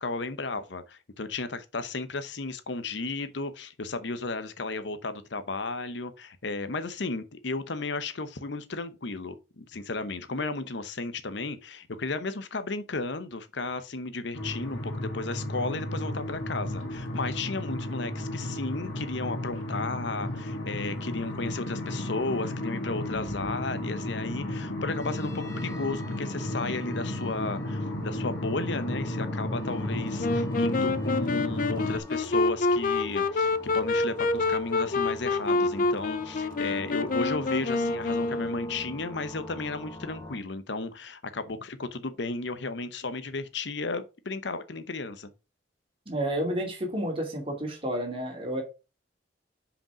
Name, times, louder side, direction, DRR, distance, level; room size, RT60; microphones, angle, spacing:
voice 1, 0.0-45.3, left 3 dB, 70° left, 0.8 m, -34 dB
sound 1, 14.3-32.0, left 1 dB, 85° left, 2.2 m, -33 dB
sound 2, 25.0-40.4, left 2 dB, 15° left, 2.4 m, -45 dB
Wind instrument woodwind instrument, 30.2-38.9, left 3 dB, 45° left, 0.5 m, -27 dB
voice 2, 46.1-48.6, right 1 dB, 30° right, 2.5 m, -30 dB
5.9 x 5.1 x 4.8 m
head